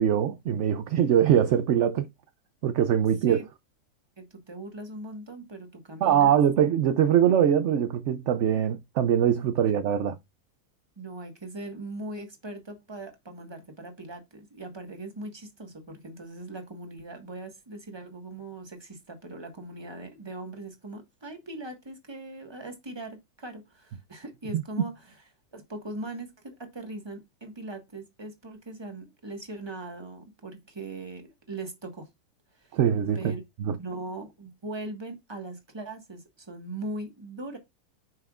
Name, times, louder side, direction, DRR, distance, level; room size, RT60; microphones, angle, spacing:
voice 1, 0.0-2.1 2.6-3.4 6.0-10.1 24.5-24.6 32.7-33.3 33.6-33.8, right 9 dB, 65° right, 0.7 m, -22 dB
voice 2, 4.2-6.4 11.0-25.1 25.5-32.1 32.5-32.8 33.1-33.4 33.8-37.6, right 2 dB, 15° right, 1.3 m, -40 dB
7.8 x 5.6 x 2.4 m
omnidirectional pair, 1.7 m